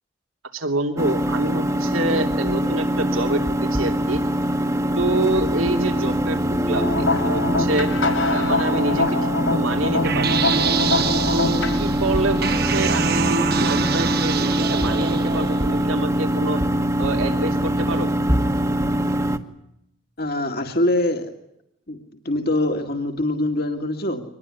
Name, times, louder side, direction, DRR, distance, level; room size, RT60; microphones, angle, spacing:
voice 1, 0.5-4.2 5.0-6.9 7.2-7.9 8.3-9.2 9.5-10.6 11.3-16.6 17.0-18.1, right 2 dB, 85° right, 5 dB, 3.0 m, -27 dB
sound 1, 1.0-19.4, equal, 15° right, 1.4 m, -23 dB
sound 2, 6.7-11.8, left 3 dB, 75° left, 5.3 m, -24 dB
sound 3, 10.0-15.9, right 5 dB, 50° right, 1.2 m, -25 dB
voice 2, 20.2-21.3 21.9-22.0 22.2-24.2, left 1 dB, 50° left, 4 dB, 2.1 m, -23 dB
24.5 x 20.5 x 9.8 m, 0.80 s
head